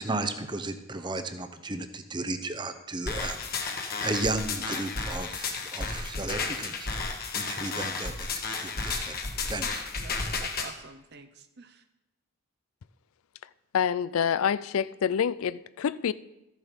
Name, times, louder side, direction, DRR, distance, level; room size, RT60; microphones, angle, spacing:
voice 1, 0.0-6.9 7.3-9.1 9.4-9.8, right 2 dB, 20° right, 0.7 m, -34 dB
sound 1, 3.1-10.7, left 4 dB, 45° left, 1.3 m, -33 dB
voice 2, 7.6-8.1 10.0-11.8, right 4 dB, 50° right, 0.8 m, -48 dB
voice 3, 13.7-16.1, left 7 dB, 75° left, 0.4 m, -27 dB
13.5 x 7.3 x 5.2 m
head